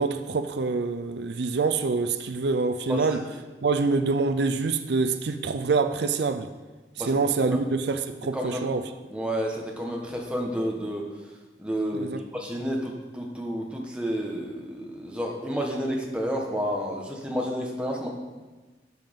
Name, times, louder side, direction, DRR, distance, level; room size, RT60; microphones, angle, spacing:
voice 1, 0.0-3.2 3.6-6.5 7.0-8.8 11.9-12.2, right 4 dB, 75° right, 9 dB, 0.5 m, -26 dB
voice 2, 8.3-8.7 9.1-11.1 11.6-18.1, equal, 5° right, -1 dB, 1.2 m, -30 dB
12.0 x 7.5 x 3.6 m, 1.3 s
head